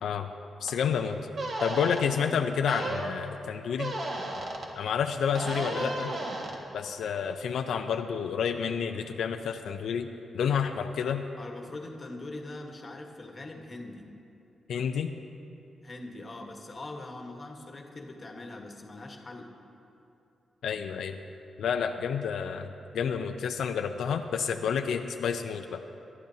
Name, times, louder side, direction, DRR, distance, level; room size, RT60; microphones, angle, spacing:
voice 1, 0.6-1.2 1.6-3.9 4.8-6.1 6.7-10.1 10.3-11.2 14.7-15.1 20.6-21.2 21.6-25.8, left 7 dB, 90° left, 5 dB, 0.5 m, -29 dB
sound 1, 0.7-0.8 1.3-2.0 2.7-3.1 3.8-4.7 5.3-6.6, right 2 dB, 55° right, 1.6 m, -34 dB
voice 2, 2.1-2.4 5.4-6.3 11.4-14.1 15.8-19.5, left 2 dB, 30° left, 2 dB, 1.3 m, -42 dB
24.5 x 12.0 x 2.8 m, 2.7 s
wide cardioid pair, 145°, 0 cm